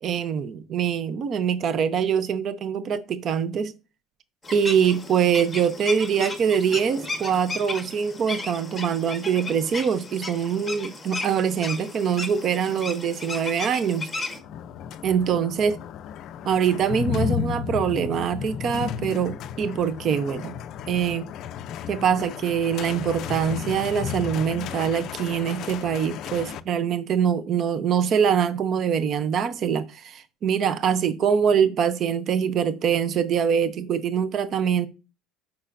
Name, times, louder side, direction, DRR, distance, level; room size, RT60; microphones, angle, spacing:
voice 1, 0.0-3.7 4.5-14.1 15.0-15.8 16.4-20.5 20.9-21.3 21.9-34.9, right 7 dB, 35° right, 0.5 m, -24 dB
sound 1, 4.4-14.4, left 3 dB, 5° left, 1.1 m, -35 dB
sound 2, 14.3-26.6, left 8 dB, 40° left, 0.4 m, -33 dB
8.6 x 5.7 x 2.5 m
cardioid pair, 170°, 0 cm